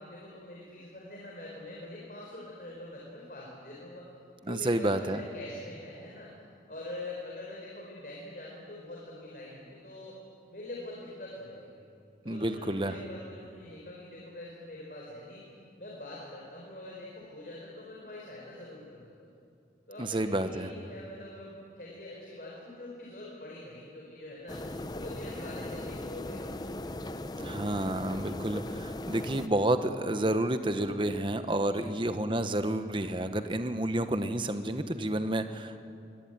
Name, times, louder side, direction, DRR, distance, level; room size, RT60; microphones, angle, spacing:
voice 1, 0.0-4.1 4.4-6.3 6.7-10.2 10.5-11.8 12.2-15.4 15.8-19.3 19.9-24.6 24.9-26.6 31.6-31.9, left 1 dB, 50° left, -4 dB, 4.4 m, -44 dB
voice 2, 4.5-5.2 12.2-13.0 20.0-20.7 27.4-35.8, right 1 dB, 30° right, 9 dB, 1.1 m, -30 dB
sound 1, 24.5-29.5, left 1 dB, 25° left, 0.7 m, -38 dB
23.5 x 18.0 x 9.1 m, 2.5 s
head